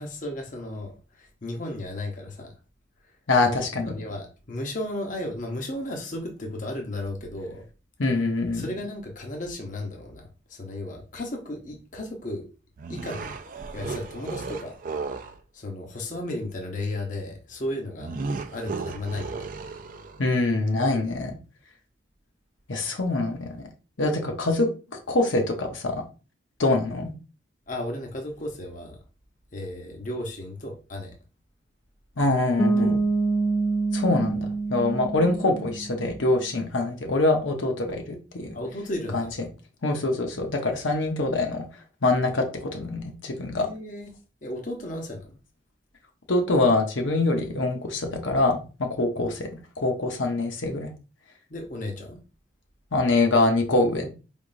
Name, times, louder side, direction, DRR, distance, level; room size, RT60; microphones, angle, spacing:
voice 1, 0.0-2.5 3.4-7.6 8.5-12.4 12.9-13.3 13.7-14.7 15.5-18.2 18.5-19.5 27.7-29.0 29.5-31.1 32.8-33.0 38.5-39.4 43.5-44.1 44.4-45.3 51.5-52.2, left 1 dB, 40° left, 0.8 m, -34 dB
voice 2, 3.3-3.9 8.0-8.7 20.2-21.4 22.7-23.5 24.0-24.7 24.9-26.0 26.6-27.1 32.2-33.0 33.9-38.5 39.1-39.2 39.8-41.6 42.0-43.7 46.3-49.5 49.8-50.9 52.9-54.1, left 2 dB, 80° left, 0.9 m, -24 dB
sound 1, 12.8-15.4 18.0-20.3, right 4 dB, 45° right, 0.4 m, -34 dB
Bass guitar, 32.6-36.3, right 3 dB, 5° left, 0.5 m, -26 dB
4.7 x 3.6 x 2.6 m
head